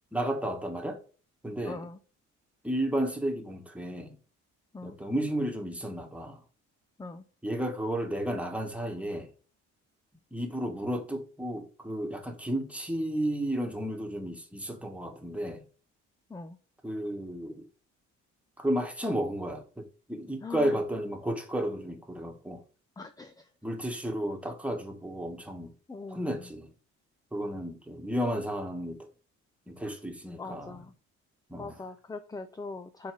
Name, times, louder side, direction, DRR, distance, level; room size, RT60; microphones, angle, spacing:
voice 1, 0.1-1.0 1.4-1.9 2.6-4.2 4.8-6.4 7.4-9.3 10.3-15.6 16.8-17.6 18.6-22.6 23.6-25.7 26.1-26.7 27.3-29.0 29.7-30.8 31.5-31.8, right 1 dB, 5° right, 1.5 m, -33 dB
voice 2, 1.6-2.0 4.7-4.9 7.0-7.2 16.3-16.6 20.4-20.7 23.0-23.3 25.9-26.3 30.4-30.9 31.6-33.1, left 3 dB, 10° left, 0.5 m, -41 dB
5.6 x 4.0 x 4.6 m
cardioid pair, 90°, 30 cm